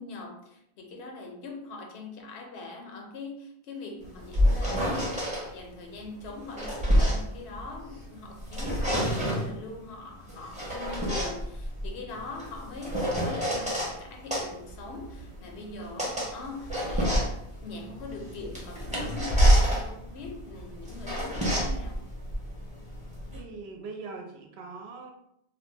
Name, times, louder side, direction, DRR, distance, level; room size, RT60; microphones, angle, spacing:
voice 1, 0.0-17.3 17.6-22.0, left 3 dB, 80° left, 2 dB, 0.9 m, -42 dB
sound 1, 4.0-5.4 6.2-8.0 8.4-9.5 10.3-13.9 14.3-23.4, equal, 10° right, 0.7 m, -27 dB
voice 2, 23.3-25.1, right 4 dB, 75° right, 3 dB, 0.8 m, -41 dB
2.8 x 2.0 x 3.2 m, 0.77 s
omnidirectional pair, 1.1 m